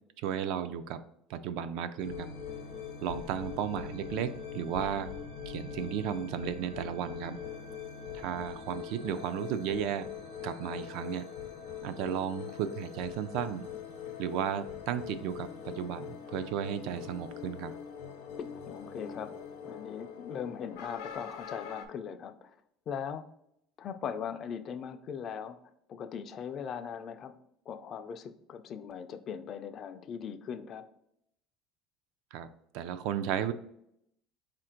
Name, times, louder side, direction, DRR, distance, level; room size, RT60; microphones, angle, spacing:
voice 1, 0.2-1.0 1.3-2.3 3.0-5.1 5.5-7.4 8.1-10.1 10.4-11.2 11.8-13.7 14.2-17.7 32.3-32.5 32.7-33.5, right 9 dB, 60° right, 11 dB, 0.3 m, -34 dB
sound 1, 2.0-21.9, left 7 dB, 85° left, 0.7 m, -42 dB
voice 2, 18.4-19.4 19.6-22.5 22.9-23.2 23.8-25.6 25.9-27.3 27.7-30.9, left 7 dB, 35° left, 9 dB, 0.3 m, -39 dB
4.2 x 2.5 x 4.3 m, 0.76 s
cardioid pair, 165°, 0 cm